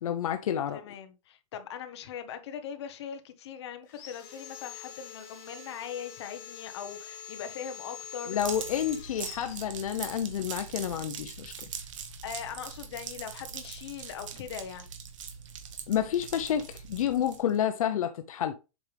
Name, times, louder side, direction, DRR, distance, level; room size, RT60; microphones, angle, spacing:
voice 1, 0.0-0.8 8.3-11.7 15.9-18.5, left 9 dB, 75° left, 0.8 m, -29 dB
voice 2, 0.7-8.4 12.2-14.9, left 8 dB, 50° left, 1.2 m, -40 dB
Sawing, 3.9-10.3, left 9 dB, 35° left, 1.7 m, -45 dB
sound 1, 8.4-17.6, right 7 dB, 65° right, 1.6 m, -42 dB
7.8 x 5.2 x 3.4 m
supercardioid pair, 180°, 18 cm